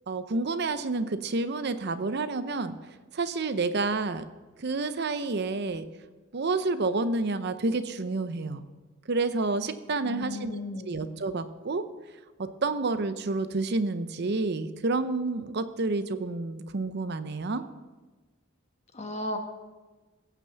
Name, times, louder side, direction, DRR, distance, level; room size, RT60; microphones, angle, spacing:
voice 1, 0.1-2.8 3.1-4.2 4.6-5.9 6.3-8.6 9.1-11.8 12.4-17.6, right 3 dB, 55° right, 11 dB, 0.6 m, -29 dB
voice 2, 10.0-11.1 18.9-19.4, left 2 dB, 35° left, 4 dB, 1.3 m, -35 dB
16.5 x 6.0 x 7.0 m, 1.2 s
head